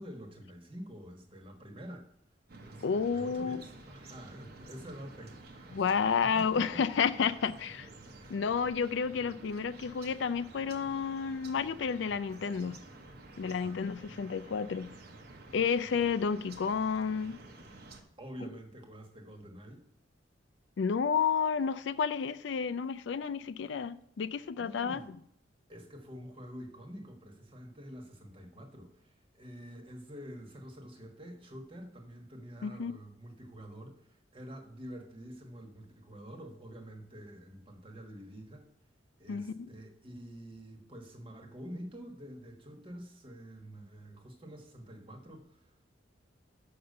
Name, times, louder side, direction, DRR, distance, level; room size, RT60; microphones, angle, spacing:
voice 1, 0.0-2.1 2.6-5.8 6.3-6.9 7.8-8.4 13.4-13.8 18.2-19.8 24.5-25.1 25.7-38.6 39.2-45.9, equal, 25° right, 1.3 m, -47 dB
sound 1, 2.5-18.0, right 2 dB, 55° right, 1.0 m, -51 dB
voice 2, 2.8-3.6 5.7-7.9 8.3-12.7 13.4-14.9 15.5-17.4 18.4-18.5 20.8-25.0 32.6-32.9 39.3-39.7, left 6 dB, 65° left, 0.4 m, -31 dB
6.6 x 5.9 x 6.6 m
head